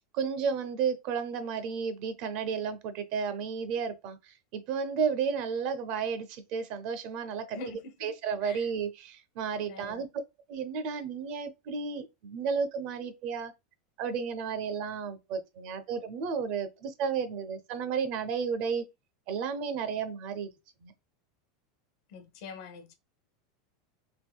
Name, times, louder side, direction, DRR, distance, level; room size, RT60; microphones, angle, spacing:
voice 1, 0.0-7.6 8.0-10.1 10.5-13.5 14.0-18.9 19.3-20.5 20.8-20.9, right 6 dB, 40° right, 0.5 m, -32 dB
voice 2, 7.5-8.1 8.4-8.7 9.7-10.0 22.1-22.9, left 3 dB, 50° left, 0.7 m, -44 dB
3.4 x 2.6 x 2.2 m
supercardioid pair, 170°, 2 cm